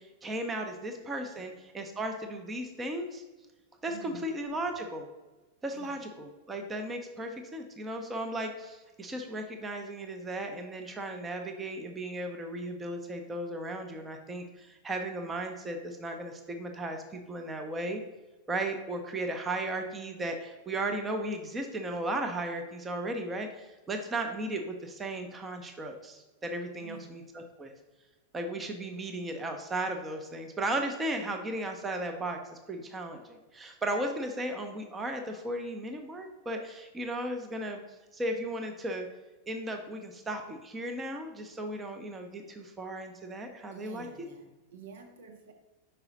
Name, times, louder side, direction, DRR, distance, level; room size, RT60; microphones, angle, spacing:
voice 1, 0.0-3.2 3.8-5.1 5.6-18.0 18.5-27.7 28.3-32.4 32.7-37.8 38.1-39.1 39.5-44.3, right 1 dB, 15° right, 0.7 m, -35 dB
voice 2, 0.7-1.5 3.9-4.4 5.7-6.1 26.8-27.2 43.7-45.5, right 6 dB, 60° right, 0.8 m, -50 dB
5.6 x 4.8 x 4.0 m
figure-of-eight pair, 90°, 0 cm